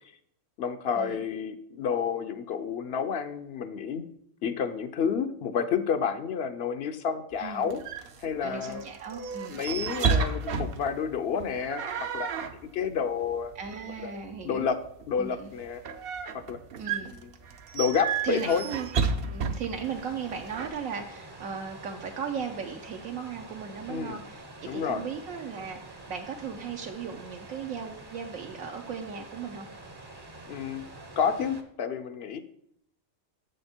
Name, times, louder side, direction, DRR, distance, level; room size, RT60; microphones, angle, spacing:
voice 1, 0.6-4.1 4.4-7.8 8.2-8.8 9.5-12.3 12.7-13.5 14.0-14.1 14.4-14.8 15.1-15.8 16.3-16.6 17.2-17.3 17.7-18.6 23.9-24.2 24.7-25.1 30.5-30.9 31.2-32.4, left 6 dB, 60° left, 11 dB, 0.7 m, -30 dB
sound 1, 7.3-20.7, right 5 dB, 55° right, 0.7 m, -33 dB
voice 2, 7.4-7.7 8.4-9.6 13.5-14.7 15.2-15.5 16.8-17.1 18.2-18.9 19.2-29.7, right 6 dB, 75° right, 2 dB, 1.1 m, -37 dB
sound 2, 19.8-31.6, right 2 dB, 25° right, 0.6 m, -47 dB
7.2 x 6.5 x 4.4 m, 0.71 s
omnidirectional pair, 1.4 m